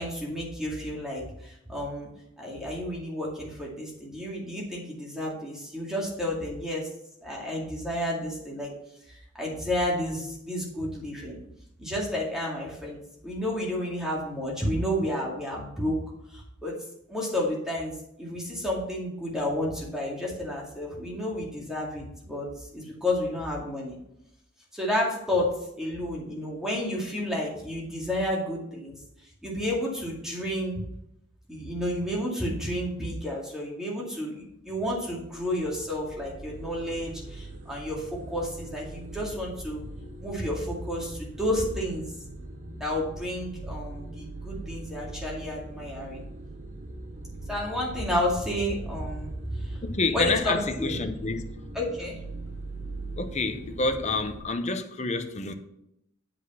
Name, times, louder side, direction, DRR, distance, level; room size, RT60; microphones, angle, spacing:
voice 1, 0.0-2.1 2.4-6.9 7.2-8.7 9.1-11.4 11.8-16.0 16.3-16.7 17.1-24.0 24.7-29.0 29.4-30.8 31.5-39.8 40.2-42.1 42.8-46.2 47.5-49.8 50.1-51.0 51.7-52.2, left 1 dB, 5° right, 2.2 m, -31 dB
sound 1, 35.2-54.4, right 2 dB, 40° right, 0.9 m, -41 dB
voice 2, 49.8-51.7 53.2-55.5, left 3 dB, 35° left, 0.7 m, -28 dB
8.2 x 5.1 x 5.5 m
head